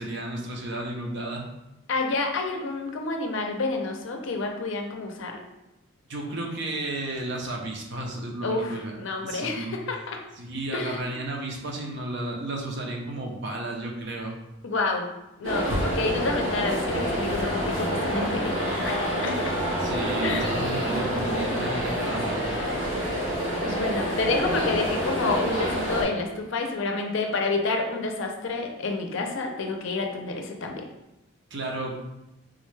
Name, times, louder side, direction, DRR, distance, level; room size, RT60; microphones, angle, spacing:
voice 1, 0.0-1.4 6.1-8.9 9.2-9.7 10.4-14.3 19.8-22.5 31.5-32.0, right 2 dB, 55° right, 0 dB, 0.6 m, -33 dB
voice 2, 1.9-5.4 8.4-10.2 10.7-11.1 14.6-15.1 15.4-19.4 20.2-20.5 23.6-30.8, left 3 dB, 60° left, 3 dB, 0.5 m, -29 dB
sound 1, 15.4-26.0, equal, 70° right, 1.1 m, -27 dB
3.7 x 2.2 x 3.1 m, 0.93 s
head